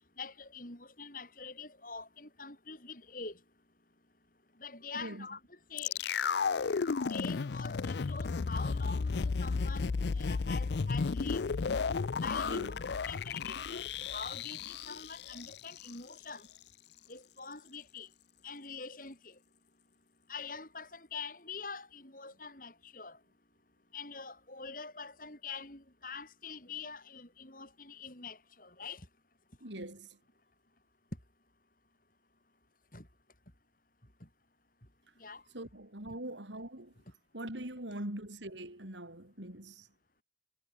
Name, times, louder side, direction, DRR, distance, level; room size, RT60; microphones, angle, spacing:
voice 1, 0.2-3.4 4.6-6.0 7.1-11.4 12.2-16.5 17.1-18.1 18.4-19.4 20.3-23.2 23.9-29.1 32.9-33.1 34.2-34.3 35.2-35.4, left 5 dB, 50° left, 7.5 m, -45 dB
voice 2, 4.9-5.3 12.4-12.8 29.6-30.2 35.5-36.9 37.3-39.9, right 1 dB, 90° right, 5.7 m, -43 dB
sound 1, 5.8-15.9 16.2-16.3, left 5 dB, 70° left, 0.5 m, -33 dB
head